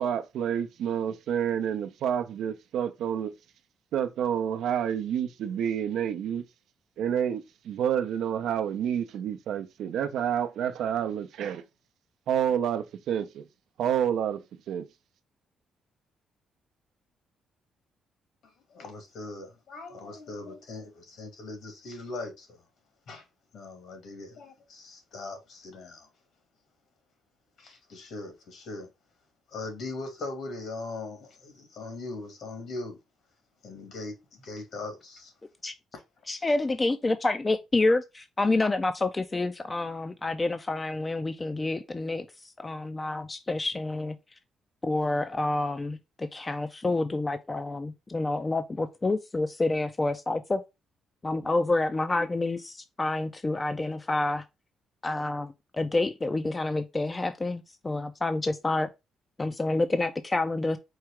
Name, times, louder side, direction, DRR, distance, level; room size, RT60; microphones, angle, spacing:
voice 1, 0.0-3.4 3.9-6.4 7.0-11.7 12.3-13.5 13.8-14.9, right 9 dB, 80° right, 0.6 m, -29 dB
voice 2, 18.7-22.6 23.1-23.2 23.5-26.1 27.6-28.9 29.5-33.0 33.6-35.3, left 3 dB, 70° left, 2.0 m, -40 dB
voice 3, 36.3-42.3 42.6-44.2 44.8-50.6 51.2-54.4 55.0-58.9 59.4-60.8, left 2 dB, 25° left, 0.4 m, -28 dB
4.7 x 2.4 x 4.7 m
cardioid pair, 90°, 0 cm